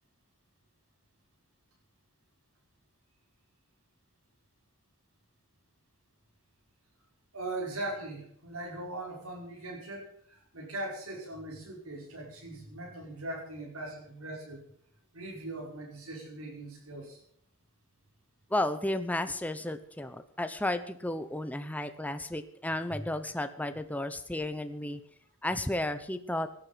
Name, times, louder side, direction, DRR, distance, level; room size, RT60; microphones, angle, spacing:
voice 1, 7.3-14.7 15.1-17.2 22.9-23.1, right 2 dB, 75° right, -2 dB, 5.4 m, -40 dB
voice 2, 18.5-25.0 25.4-26.5, left 1 dB, 5° left, 9 dB, 0.7 m, -33 dB
18.5 x 10.5 x 5.7 m, 0.65 s
head